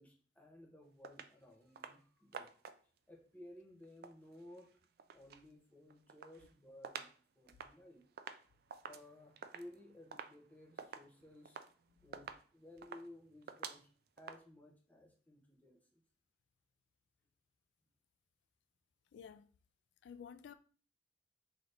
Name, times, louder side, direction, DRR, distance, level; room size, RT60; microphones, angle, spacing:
voice 1, 0.0-2.5 3.1-4.7 5.1-7.1 7.3-8.0 8.9-11.6 12.0-13.9 14.2-16.0, left 1 dB, 10° left, 0.9 m, -57 dB
sound 1, 1.0-1.3 1.8-2.0 2.3-3.0 3.8-5.5 5.8-7.2 7.5-14.4, right 6 dB, 60° right, 0.3 m, -50 dB
voice 2, 19.1-19.5 20.0-20.5, left 7 dB, 90° left, 0.3 m, -52 dB
3.8 x 3.0 x 3.3 m
head